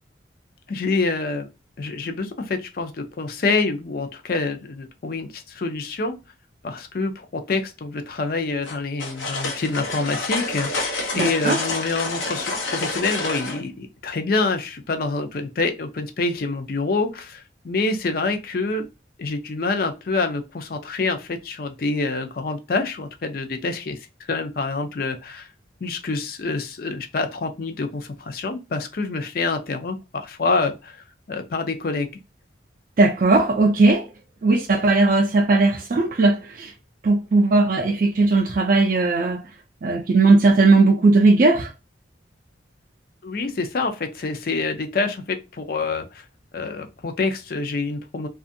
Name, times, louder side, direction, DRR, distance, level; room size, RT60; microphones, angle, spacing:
voice 1, 0.7-1.5 1.8-6.2 6.6-10.7 11.1-18.9 19.2-24.0 24.3-25.5 25.8-32.1 43.2-46.2 46.5-48.3, left 3 dB, 50° left, 0.4 m, -26 dB
sound 1, 8.6-13.6, left 2 dB, 85° left, 0.8 m, -28 dB
voice 2, 11.1-11.6 33.0-34.0 34.4-36.7 37.0-39.4 39.8-41.7, right 3 dB, 45° right, 0.4 m, -17 dB
2.5 x 2.4 x 2.6 m
head